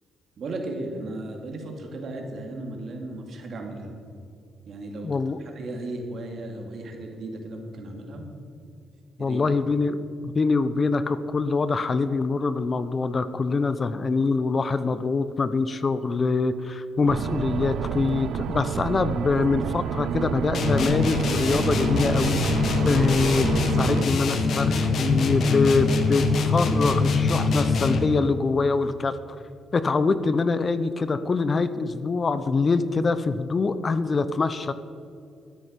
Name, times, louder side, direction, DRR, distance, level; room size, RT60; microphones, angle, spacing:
voice 1, 0.4-4.0 4.7-8.3 9.2-9.4 17.0-17.2, right 2 dB, 55° right, 2 dB, 2.4 m, -35 dB
voice 2, 5.0-5.4 9.2-22.4 22.8-29.2 29.7-34.7, left 4 dB, 35° left, 13 dB, 0.6 m, -24 dB
sound 1, 17.1-24.1, right 9 dB, 75° right, 0.4 m, -29 dB
sound 2, 20.5-28.2, left 3 dB, 60° left, 1.3 m, -23 dB
13.0 x 9.9 x 5.2 m, 2.5 s
cardioid pair, 90°, 0 cm